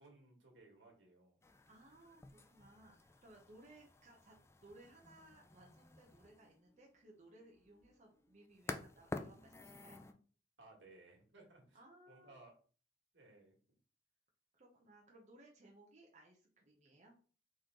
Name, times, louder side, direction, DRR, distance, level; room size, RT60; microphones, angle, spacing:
voice 1, 0.0-1.4 10.6-11.8 12.1-12.5 13.1-13.5, right 2 dB, 90° right, -1 dB, 1.7 m, -61 dB
sound 1, 1.4-10.1, left 2 dB, 15° left, 0.3 m, -51 dB
voice 2, 1.7-4.3 4.6-10.0 11.7-12.3 14.5-17.1, right 1 dB, 40° right, -1 dB, 0.9 m, -62 dB
4.2 x 3.1 x 3.7 m, 0.40 s
head